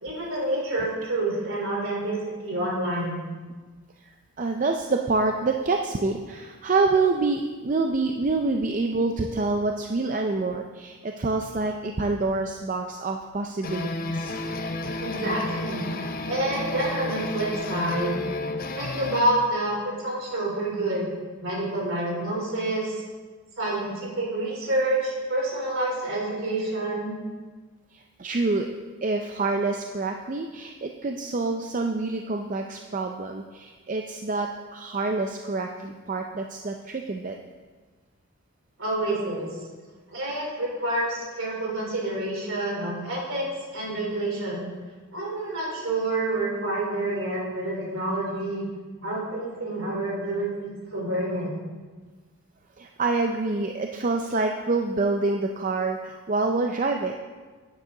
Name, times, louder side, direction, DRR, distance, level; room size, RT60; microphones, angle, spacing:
voice 1, 0.0-3.2 15.0-15.8 16.3-18.2 18.8-21.0 21.4-23.0 23.6-27.1 38.8-39.5 40.1-43.5 43.7-44.6 45.1-48.7 49.0-51.5, right 1 dB, 65° right, -3 dB, 3.6 m, -28 dB
voice 2, 4.0-14.4 27.9-28.7 29.0-37.4 52.8-57.1, right 3 dB, 35° right, 3 dB, 0.5 m, -27 dB
Slow Creepy Rock Louder Version, 13.6-19.2, left 2 dB, 40° left, 0.7 m, -32 dB
11.5 x 9.1 x 3.8 m, 1.4 s
head